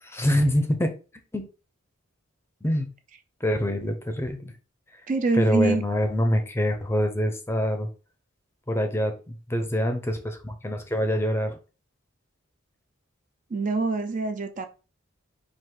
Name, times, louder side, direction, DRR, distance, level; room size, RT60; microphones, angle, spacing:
voice 1, 0.0-0.9 1.3-1.4 2.6-2.9 3.4-4.4 5.3-7.9 8.7-11.6, equal, 10° left, 0.6 m, -25 dB
voice 2, 5.1-5.8 13.5-14.7, right 3 dB, 40° right, 0.4 m, -25 dB
4.7 x 2.5 x 3.7 m
head